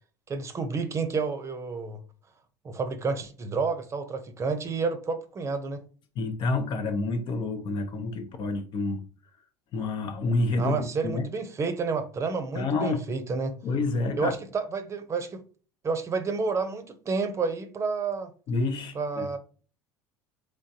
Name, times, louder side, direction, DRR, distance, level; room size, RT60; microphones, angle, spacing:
voice 1, 0.3-2.0 2.6-5.8 10.6-13.5 14.2-15.4 15.8-18.3 18.9-19.4, right 4 dB, 30° right, 0.7 m, -30 dB
voice 2, 6.2-9.0 9.7-11.3 12.6-13.0 13.6-14.3 18.5-19.3, left 3 dB, 50° left, 0.8 m, -28 dB
3.7 x 3.5 x 2.8 m
supercardioid pair, 95°, 10 cm